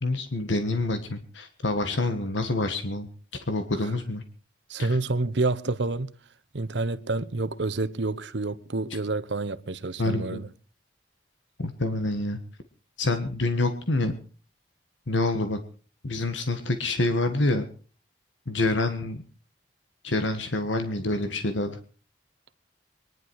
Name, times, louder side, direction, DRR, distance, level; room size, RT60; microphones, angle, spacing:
voice 1, 0.0-3.1 3.5-4.2 4.8-4.9 10.0-10.4 11.6-12.4 13.0-14.1 15.1-15.6 16.0-17.6 18.5-19.2 20.0-21.7, left 2 dB, 85° left, 1.5 m, -27 dB
voice 2, 4.7-6.1 6.5-10.5, right 3 dB, 75° right, 0.9 m, -28 dB
23.0 x 11.0 x 4.7 m
head